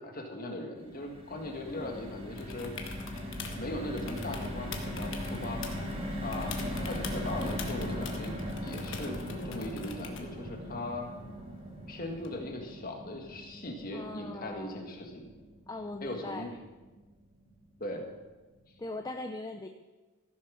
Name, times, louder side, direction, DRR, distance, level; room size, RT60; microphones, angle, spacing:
voice 1, 0.0-2.7 3.5-5.6 6.2-8.4 8.6-11.1 11.9-15.3 16.0-16.5 17.8-18.1, left 1 dB, 40° left, 2 dB, 1.7 m, -39 dB
sound 1, 0.8-17.1 17.5-17.6 17.9-18.1, left 1 dB, 25° right, 1.7 m, -39 dB
sound 2, 2.4-3.6 4.0-6.0 6.3-10.4 12.2-12.3, left 4 dB, 55° left, 1.4 m, -43 dB
voice 2, 13.9-14.9 15.7-16.5 18.8-19.7, left 2 dB, 15° left, 5 dB, 0.4 m, -40 dB
14.5 x 6.8 x 6.3 m, 1.2 s
head